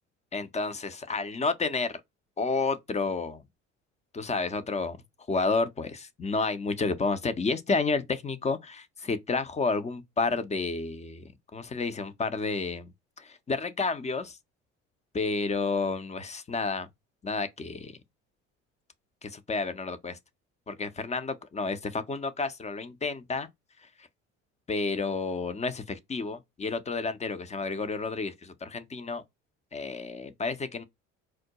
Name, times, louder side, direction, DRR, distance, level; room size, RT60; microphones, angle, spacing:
voice 1, 0.3-2.0 2.4-3.4 4.1-5.0 5.3-12.9 13.2-14.4 15.1-16.9 17.2-18.0 19.2-20.2 20.7-23.5 24.7-29.2 29.7-30.8, left 4 dB, 20° left, 0.5 m, -30 dB
4.5 x 2.1 x 2.8 m
hypercardioid pair, 55°, 36 cm